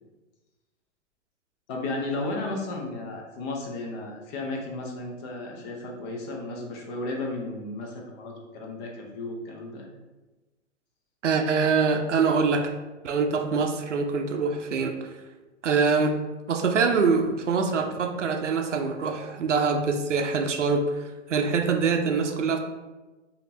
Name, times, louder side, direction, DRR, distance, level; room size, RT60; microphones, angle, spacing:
voice 1, 1.7-9.9, left 2 dB, 25° left, 1 dB, 0.6 m, -34 dB
voice 2, 11.2-12.7 13.0-15.1 15.6-16.2 16.5-21.0 21.3-22.6, right 4 dB, 75° right, 6 dB, 0.6 m, -24 dB
5.1 x 2.8 x 2.8 m, 1.2 s
figure-of-eight pair, 115°, 36 cm